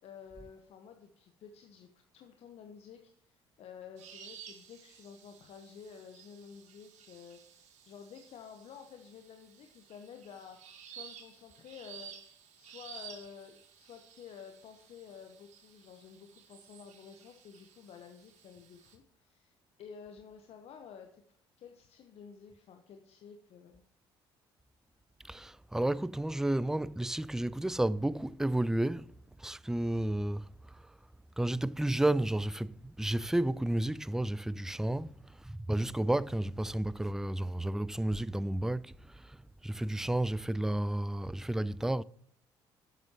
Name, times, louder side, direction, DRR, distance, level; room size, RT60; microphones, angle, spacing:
voice 1, 0.0-12.1 12.6-21.2 21.6-23.8 34.8-35.1, left 7 dB, 55° left, 0.9 m, -51 dB
sound 1, 4.0-19.0, right 8 dB, 65° right, 1.5 m, -54 dB
voice 2, 25.3-29.1 29.4-30.5 31.4-35.1 35.5-38.9 39.6-42.0, right 1 dB, 5° right, 0.3 m, -31 dB
11.0 x 7.4 x 2.9 m
hypercardioid pair, 60°, 13 cm